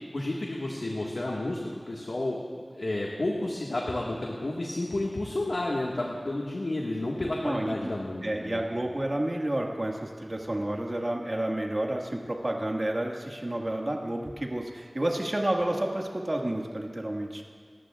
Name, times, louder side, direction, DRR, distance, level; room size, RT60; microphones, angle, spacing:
voice 1, 0.1-2.4 2.7-8.6, left 1 dB, 85° left, -3 dB, 1.7 m, -31 dB
voice 2, 7.4-7.8 8.2-17.4, right 1 dB, 45° right, 0 dB, 1.8 m, -30 dB
29.5 x 14.5 x 2.5 m, 2.2 s
wide cardioid pair, 45°, 0 cm